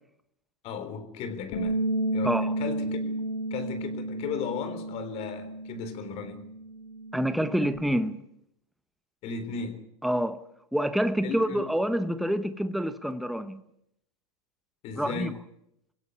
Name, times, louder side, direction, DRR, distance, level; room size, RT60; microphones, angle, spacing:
voice 1, 0.6-1.8 2.1-3.1 3.5-6.4 9.2-9.9 11.2-11.7 14.8-15.4, left 6 dB, 45° left, 3.7 m, -36 dB
Bass guitar, 1.5-7.8, right 1 dB, 65° left, 4.6 m, -32 dB
voice 2, 2.2-2.5 7.1-8.2 10.0-10.4 10.7-13.6 15.0-15.3, equal, ahead, 1.0 m, -27 dB
25.5 x 16.5 x 8.5 m
supercardioid pair, 135°, 15 cm